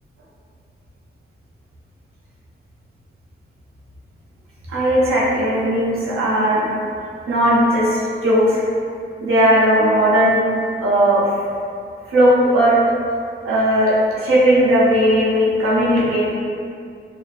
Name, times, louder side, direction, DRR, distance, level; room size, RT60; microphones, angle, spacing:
voice 1, 4.7-6.7 7.3-8.6 9.2-10.4 10.8-11.2 12.1-12.8 13.4-16.3, equal, 90° right, -7 dB, 0.6 m, -17 dB
2.4 x 2.3 x 2.4 m, 2.3 s
cardioid pair, 65°, 21 cm